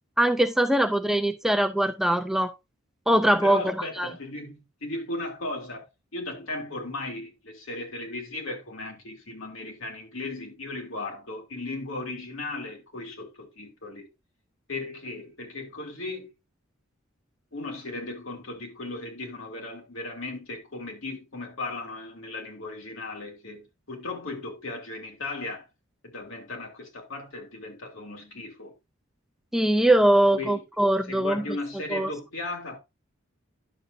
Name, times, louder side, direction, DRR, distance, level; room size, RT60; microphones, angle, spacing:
voice 1, 0.2-2.5 3.1-4.1 29.5-31.4 31.9-32.1, right 1 dB, ahead, 0.4 m, -22 dB
voice 2, 3.4-14.1 14.7-16.3 17.5-25.7 26.0-28.7 30.3-30.6 31.1-32.8, left 2 dB, 70° left, 2.5 m, -36 dB
10.5 x 6.6 x 2.6 m
head